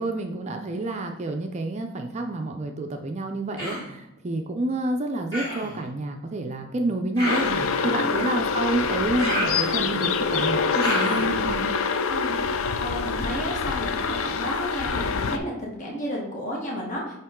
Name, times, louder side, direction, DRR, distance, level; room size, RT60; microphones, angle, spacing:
voice 1, 0.0-7.5 7.8-11.7, right 2 dB, 30° right, 4 dB, 0.4 m, -29 dB
Human voice, 3.6-3.9 5.3-5.8 7.2-7.7 9.2-10.1 10.8-11.3, equal, 20° left, 2.1 m, -30 dB
sound 1, 7.2-15.4, left 5 dB, 65° left, 0.4 m, -25 dB
voice 2, 12.1-17.1, equal, 35° left, -3 dB, 1.2 m, -32 dB
8.9 x 3.0 x 3.6 m, 0.86 s
head